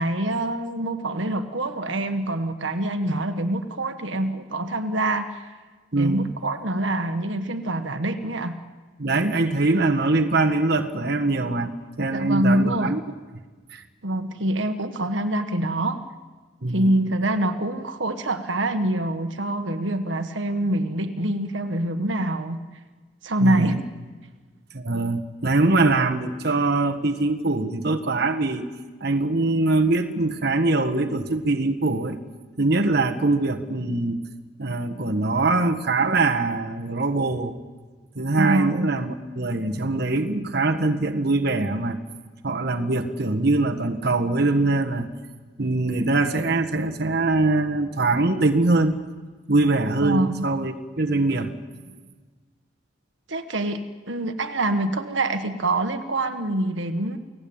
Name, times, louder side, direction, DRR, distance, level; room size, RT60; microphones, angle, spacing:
voice 1, 0.0-5.5 6.0-8.5 12.1-12.9 14.0-16.0 16.7-22.6 23.2-23.8 38.4-38.9 50.0-50.4 53.3-57.2, right 1 dB, 80° right, 8 dB, 1.6 m, -25 dB
voice 2, 5.9-6.3 9.0-13.0 13.7-13.8 16.6-16.9 23.4-23.7 24.7-28.7 29.0-32.2 32.6-34.2 34.6-37.5 38.1-42.0 42.4-45.1 45.6-49.0 49.5-51.6, right 2 dB, 55° right, 4 dB, 1.6 m, -23 dB
29.5 x 18.0 x 8.9 m, 1.4 s
head